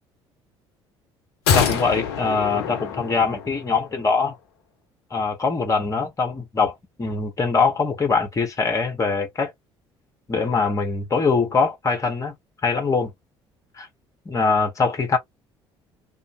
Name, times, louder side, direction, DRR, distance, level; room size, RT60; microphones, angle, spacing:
sound 1, 1.5-3.8 4.1-4.2, left 7 dB, 65° left, 0.6 m, -25 dB
voice 1, 1.5-4.4 5.1-9.5 10.3-12.3 12.6-13.1 13.8-13.9 14.2-15.2, left 4 dB, 25° left, 1.1 m, -22 dB
2.4 x 2.0 x 2.9 m
figure-of-eight pair, 55°, 14 cm